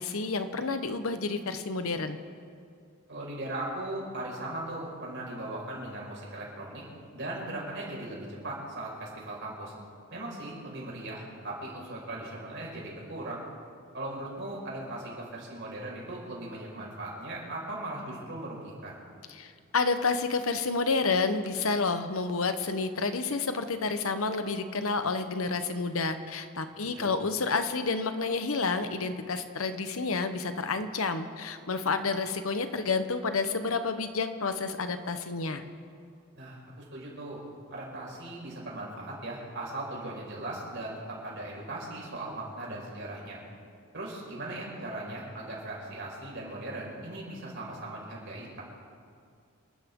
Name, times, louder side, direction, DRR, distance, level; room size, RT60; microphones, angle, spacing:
voice 1, 0.0-2.2 19.3-35.6, left 4 dB, 70° left, 9 dB, 1.0 m, -30 dB
voice 2, 3.1-6.8 7.1-9.7 10.1-13.4 13.9-19.0 26.8-27.1 36.4-37.4 37.7-43.4 43.9-48.6, right 1 dB, 55° right, -3 dB, 5.3 m, -38 dB
27.5 x 13.0 x 3.8 m, 2.3 s
head